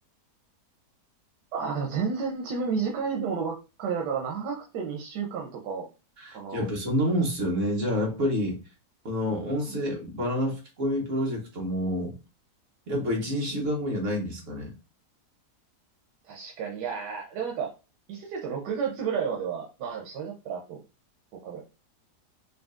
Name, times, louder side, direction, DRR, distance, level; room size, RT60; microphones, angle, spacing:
voice 1, 1.5-5.9 6.3-6.7 16.2-17.7 18.1-20.8 21.4-21.6, right 6 dB, 90° right, 0 dB, 1.4 m, -31 dB
voice 2, 6.2-8.6 9.0-12.2 12.9-14.7, equal, 50° right, 0 dB, 1.5 m, -28 dB
5.2 x 2.6 x 2.4 m, 0.30 s
omnidirectional pair, 1.8 m